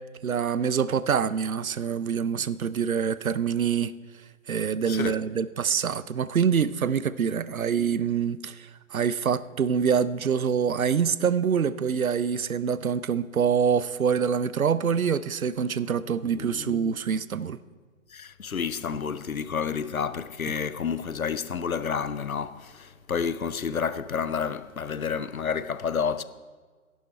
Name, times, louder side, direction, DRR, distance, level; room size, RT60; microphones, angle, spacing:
voice 1, 0.2-3.9 4.5-17.6, right 7 dB, 85° right, 0.6 m, -25 dB
voice 2, 16.3-17.0 18.1-26.2, left 6 dB, 90° left, 0.6 m, -30 dB
11.0 x 9.7 x 4.4 m
figure-of-eight pair, 135°, 41 cm